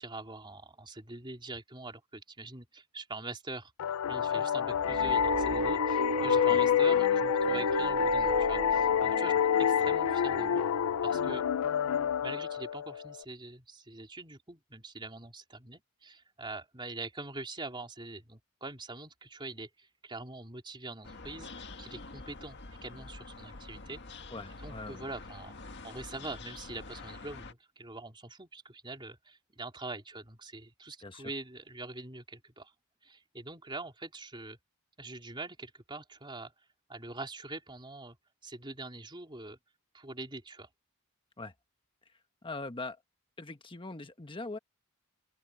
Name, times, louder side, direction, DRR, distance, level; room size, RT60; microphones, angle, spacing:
voice 1, 0.0-3.7 4.1-9.3 9.6-10.7 11.0-11.5 12.2-24.0 24.6-32.7 33.0-34.6 35.0-36.5 36.9-38.2 38.4-39.6 39.9-40.7, right 2 dB, 20° right, 3.7 m, -44 dB
sound 1, 3.8-13.2, left 8 dB, 75° left, 0.3 m, -28 dB
sound 2, 4.8-12.1, right 1 dB, 65° right, 1.0 m, -35 dB
sound 3, 21.0-27.5, left 3 dB, 55° left, 1.8 m, -47 dB
voice 2, 24.3-25.0 31.0-31.3 41.4-41.5 42.4-43.0 43.4-44.6, left 3 dB, 25° left, 1.2 m, -42 dB
open air
head